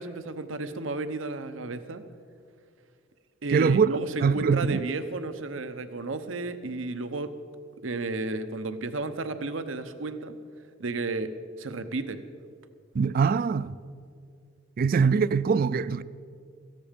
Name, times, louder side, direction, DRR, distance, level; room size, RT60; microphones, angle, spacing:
voice 1, 0.0-2.0 3.4-7.3 7.8-10.3 10.8-12.2, right 3 dB, 85° right, 0.8 m, -33 dB
voice 2, 3.5-3.9 4.2-4.8 12.9-13.8 14.8-16.0, right 5 dB, 50° right, 0.3 m, -23 dB
17.5 x 14.5 x 5.2 m
head